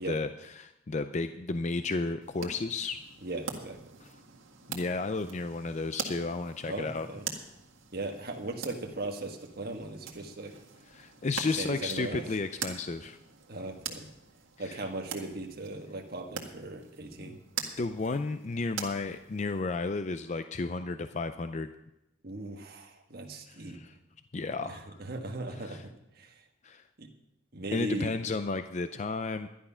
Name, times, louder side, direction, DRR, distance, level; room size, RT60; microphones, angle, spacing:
voice 1, 0.0-3.0 4.0-4.1 4.7-7.1 10.9-13.2 14.6-14.8 17.3-17.4 17.8-21.7 23.5-23.9 24.3-25.0 25.6-25.8 26.6-26.8 27.7-29.5, left 3 dB, 35° left, 10 dB, 0.4 m, -33 dB
sound 1, 2.2-19.6, right 6 dB, 75° right, 1.8 m, -43 dB
voice 2, 3.2-4.0 6.7-7.3 7.9-10.5 11.5-12.2 13.5-14.1 14.6-17.4 22.2-23.8 24.7-26.4 27.0-27.1 27.5-28.2, right 2 dB, 50° right, 3 dB, 1.5 m, -38 dB
12.0 x 11.0 x 5.6 m, 0.87 s
head